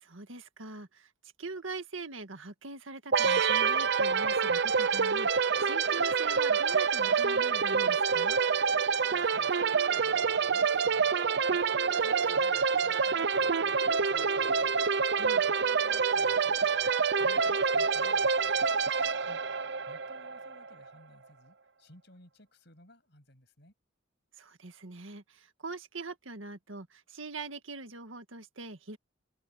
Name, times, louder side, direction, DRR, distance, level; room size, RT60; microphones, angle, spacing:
voice 1, 0.0-1.1 1.4-8.4 15.1-15.4 19.2-19.4 24.4-29.0, right 3 dB, 75° right, 1.8 m, -43 dB
sound 1, 3.1-20.7, right 5 dB, 55° right, 0.6 m, -27 dB
voice 2, 8.7-11.6 12.0-18.6 19.5-23.7, left 1 dB, 55° left, 7.7 m, -59 dB
head